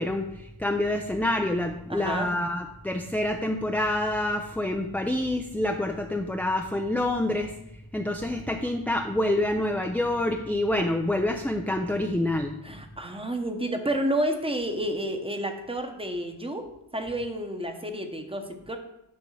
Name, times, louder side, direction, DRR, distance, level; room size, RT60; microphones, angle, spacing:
voice 1, 0.0-7.5 7.9-12.6, left 1 dB, 5° left, 3 dB, 0.3 m, -27 dB
voice 2, 1.9-2.3 12.6-16.7 16.9-18.8, right 1 dB, 10° right, 5 dB, 0.9 m, -30 dB
9.6 x 3.5 x 6.3 m, 0.86 s
wide cardioid pair, 145°, 49 cm